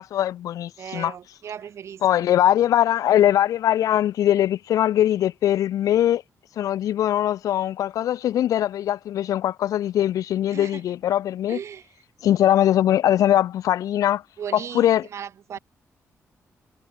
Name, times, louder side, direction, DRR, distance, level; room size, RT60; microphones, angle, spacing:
voice 1, 0.0-1.1 2.0-6.2 6.6-11.6 12.2-14.2 14.5-15.1, left 11 dB, 85° left, 0.4 m, -21 dB
voice 2, 0.8-2.0 10.5-10.8 11.5-11.9 14.4-15.6, right 8 dB, 55° right, 0.5 m, -36 dB
wide cardioid pair, 145°, 6 cm